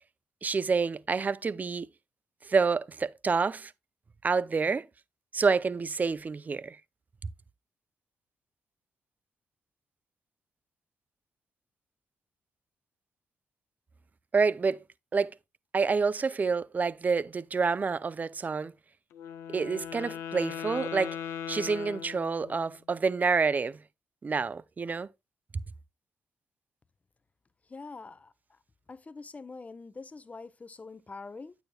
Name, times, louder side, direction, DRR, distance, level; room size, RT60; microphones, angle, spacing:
voice 1, 0.4-1.9 2.4-3.7 4.2-4.9 5.3-6.8 14.3-14.8 15.1-15.3 15.7-18.7 19.5-21.2 21.5-23.8 24.2-25.1, right 4 dB, 35° right, 0.4 m, -28 dB
Wind instrument woodwind instrument, 19.1-22.7, left 8 dB, 85° left, 0.5 m, -39 dB
voice 2, 27.7-28.3 28.9-31.5, left 4 dB, 30° left, 0.6 m, -44 dB
8.9 x 7.0 x 2.2 m
supercardioid pair, 55°, 5 cm